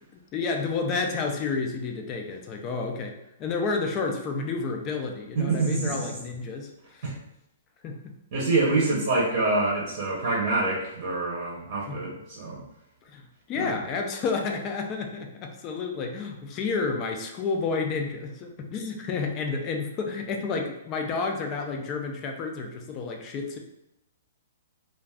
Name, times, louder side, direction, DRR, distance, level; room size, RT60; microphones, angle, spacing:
voice 1, 0.3-3.1 3.4-7.0 7.8-8.1 11.9-12.0 13.1-13.2 13.5-23.6, left 4 dB, 20° left, 3 dB, 0.4 m, -30 dB
voice 2, 5.3-6.1 7.0-7.1 8.3-12.6 13.6-13.8, right 3 dB, 40° right, -4 dB, 0.7 m, -26 dB
2.4 x 2.3 x 3.3 m, 0.85 s
hypercardioid pair, 165°, 0 cm